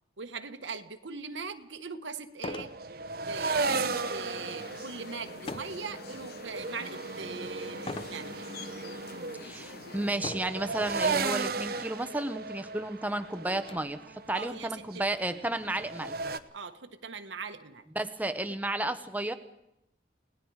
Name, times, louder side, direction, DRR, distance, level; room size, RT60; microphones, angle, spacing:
voice 1, 0.2-2.7 3.2-8.6 14.3-15.0 16.5-18.1, right 5 dB, 85° right, 7 dB, 1.3 m, -41 dB
sound 1, 1.4-1.5 2.4-2.8 3.2-3.6 5.5-5.8 6.4-6.9 7.9-8.2 9.0-9.1 10.2-10.6 11.7-11.8 12.1-12.2 12.7-13.8, left 2 dB, 30° left, 0.7 m, -40 dB
sound 2, 2.6-16.4, right 4 dB, 55° right, 0.9 m, -35 dB
sound 3, 3.5-10.2, left 4 dB, 55° left, 1.0 m, -47 dB
voice 2, 9.4-16.1 17.9-19.3, right 1 dB, 10° right, 9 dB, 1.0 m, -32 dB
30.0 x 18.5 x 4.8 m, 0.85 s
head